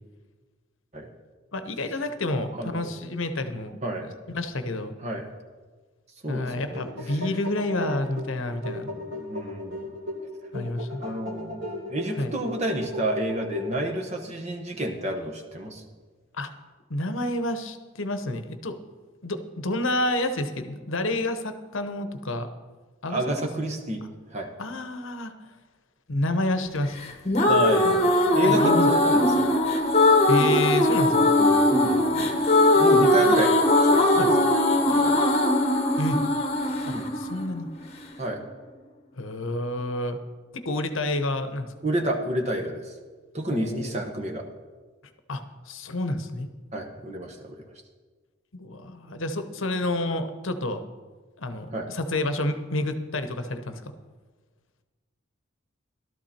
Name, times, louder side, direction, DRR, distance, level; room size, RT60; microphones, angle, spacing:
voice 1, 1.5-3.8 4.3-4.9 6.3-8.9 10.5-11.0 12.2-12.3 16.3-16.5 16.9-18.8 19.2-22.5 23.0-23.5 24.6-25.3 26.1-27.0 27.8-28.0 28.3-28.9 30.3-31.3 34.2-34.3 36.0-36.2 36.8-37.7 39.2-40.2 40.5-41.7 43.5-44.0 45.3-46.5 48.5-50.8 51.4-53.8, left 1 dB, 65° left, 9 dB, 1.0 m, -29 dB
voice 2, 2.6-2.9 3.8-4.1 5.0-5.3 6.2-7.2 8.8-9.9 11.0-11.6 11.9-15.8 23.1-24.0 24.3-24.5 27.5-28.1 28.3-29.5 31.4-32.4 32.7-34.5 34.9-35.1 36.9-37.1 38.2-38.4 41.8-43.0 43.3-44.4 46.7-47.6 51.7-51.9, right 1 dB, 30° right, 2 dB, 1.1 m, -30 dB
sound 1, 6.6-14.1, left 1 dB, 60° right, 2.6 m, -36 dB
sound 2, 27.0-38.1, left 1 dB, 30° left, 1.1 m, -20 dB
13.5 x 12.5 x 4.4 m, 1.4 s
head